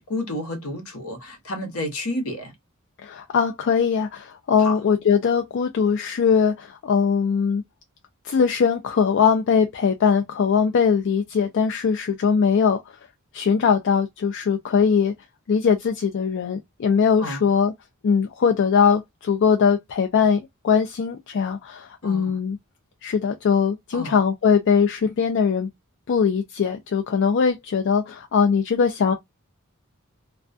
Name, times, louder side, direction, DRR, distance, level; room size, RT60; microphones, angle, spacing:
voice 1, 0.1-2.5 4.6-4.8 17.2-17.5 22.0-22.4 23.9-24.2, left 1 dB, 75° left, 0.9 m, -30 dB
voice 2, 3.0-7.6 8.2-13.0 13.3-15.1 15.5-17.7 18.0-22.6 23.0-25.7 26.1-29.1, left 6 dB, 55° left, 0.4 m, -21 dB
2.3 x 2.2 x 2.4 m
head